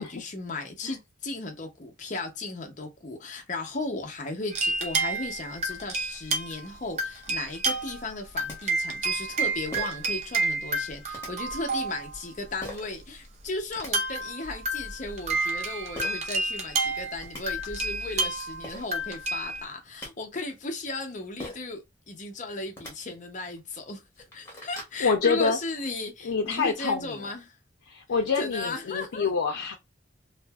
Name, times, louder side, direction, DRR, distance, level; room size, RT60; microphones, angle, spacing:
voice 1, 0.0-24.0 24.3-27.6 28.4-29.3, left 2 dB, 40° left, 0.6 m, -36 dB
sound 1, 4.5-6.7 7.0-8.1 8.4-12.2 12.8-12.9 13.7-19.6, right 3 dB, 35° right, 0.4 m, -30 dB
sound 2, 8.5-8.6 9.7-10.1 11.1-11.3 12.6-12.9 13.5-13.9 15.9-16.1 16.9-17.0 17.2-17.4 18.3-18.4 18.6-18.9 19.7-20.1 21.4-21.7 22.7-22.9 23.6-23.7 24.1-25.0, left 1 dB, 10° left, 0.9 m, -40 dB
voice 2, 25.0-25.6 26.2-27.3 27.9-29.7, left 5 dB, 85° left, 0.4 m, -27 dB
2.7 x 2.4 x 2.3 m
head